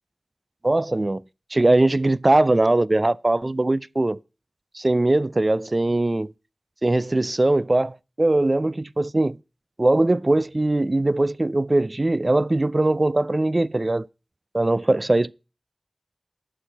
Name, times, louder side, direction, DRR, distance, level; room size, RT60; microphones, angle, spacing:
voice 1, 0.6-1.2 1.5-4.2 4.7-6.3 6.8-9.4 9.8-14.0 14.5-15.3, right 2 dB, 40° right, 0.4 m, -21 dB
11.0 x 4.6 x 6.5 m
wide cardioid pair, 45°, 0 cm